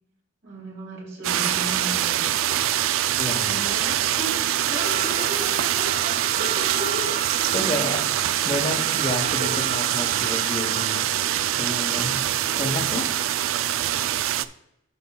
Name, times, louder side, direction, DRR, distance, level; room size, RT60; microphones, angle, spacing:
voice 1, 0.4-2.3 3.2-7.7 9.4-9.6 12.6-12.9, right 1 dB, 60° right, -2 dB, 2.3 m, -35 dB
sound 1, 1.2-14.5, right 12 dB, 75° right, 0.3 m, -24 dB
voice 2, 3.2-3.6 7.5-8.0 8.4-12.3 12.6-13.1, left 1 dB, 30° left, 3 dB, 0.9 m, -30 dB
Wind instrument woodwind instrument, 4.6-11.2, right 8 dB, 45° right, 1.2 m, -36 dB
14.0 x 5.3 x 2.3 m, 0.81 s
head